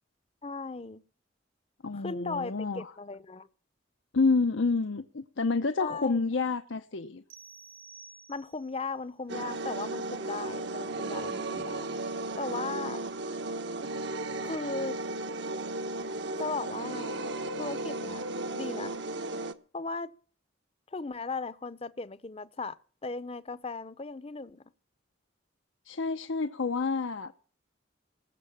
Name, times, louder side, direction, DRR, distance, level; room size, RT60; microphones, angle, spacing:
voice 1, 0.4-1.0 1.9-3.5 5.8-6.2 8.3-11.9 12.4-13.0 14.4-15.0 16.4-17.3 17.6-18.2 18.5-18.9 19.7-20.1 20.9-22.8 23.0-24.6, left 3 dB, 30° left, 0.7 m, -37 dB
voice 2, 1.8-2.9 4.1-7.2 25.9-27.3, left 4 dB, 75° left, 0.8 m, -29 dB
sound 1, 7.3-8.8, right 5 dB, 90° right, 3.6 m, -51 dB
sound 2, 9.3-19.5, right 2 dB, 60° right, 1.1 m, -35 dB
19.5 x 7.6 x 7.3 m
head